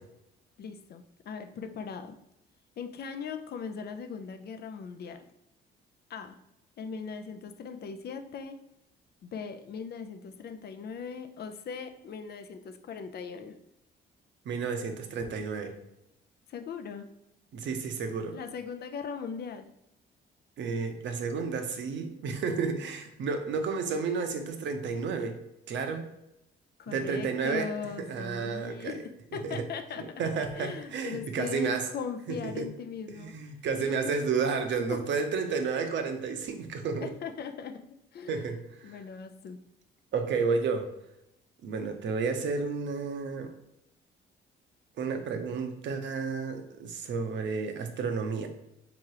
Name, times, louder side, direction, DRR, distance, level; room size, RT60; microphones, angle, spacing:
voice 1, 0.6-2.2 2.8-5.3 6.1-6.4 6.8-8.6 9.2-13.6 16.5-17.1 18.3-19.7 26.8-29.0 29.3-30.2 30.5-33.3 33.8-34.1 34.9-35.0 37.0-37.8 38.1-38.4 38.8-39.6, left 6 dB, 55° left, 9 dB, 0.5 m, -39 dB
voice 2, 14.4-15.8 17.5-18.3 20.6-25.4 25.7-26.0 26.9-27.7 28.1-29.0 29.4-29.6 30.0-31.9 32.3-32.7 33.1-37.1 38.3-38.9 40.1-40.9 41.6-43.5 45.0-48.5, right 5 dB, 65° right, 6 dB, 0.7 m, -31 dB
3.7 x 3.0 x 4.7 m, 0.84 s
cardioid pair, 90°, 20 cm